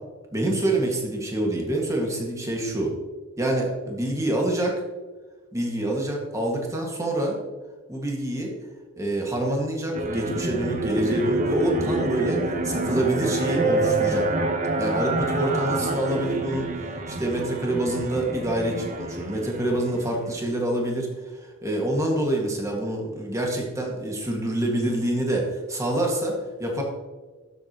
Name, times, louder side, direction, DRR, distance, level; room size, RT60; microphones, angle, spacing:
voice 1, 0.3-2.9 3.4-4.7 5.5-7.4 7.9-8.5 9.0-14.3 14.8-16.7 17.1-21.1 21.4-26.8, right 1 dB, 15° right, -1 dB, 1.9 m, -26 dB
sound 1, 9.9-20.4, right 2 dB, 40° right, 1.0 m, -27 dB
12.0 x 8.0 x 3.0 m, 1.4 s
head